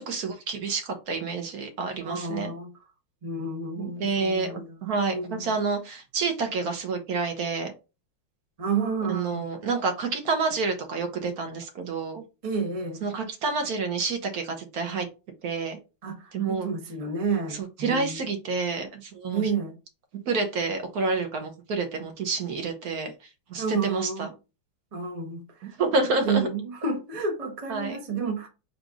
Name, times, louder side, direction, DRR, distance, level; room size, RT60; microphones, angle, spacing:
voice 1, 0.0-2.5 3.8-7.7 9.1-12.2 13.0-15.1 15.4-15.8 16.3-16.7 17.3-17.4 17.8-19.5 20.3-23.1 23.5-24.3 25.6-26.5 27.7-28.0, right 4 dB, 60° right, 1.1 m, -28 dB
voice 2, 2.0-2.7 3.2-4.8 5.1-5.5 8.6-9.4 12.4-13.0 16.0-18.2 19.3-19.7 23.6-24.3 24.9-25.8 26.2-28.5, right 4 dB, 40° right, 0.5 m, -30 dB
3.9 x 2.5 x 4.6 m
omnidirectional pair, 2.4 m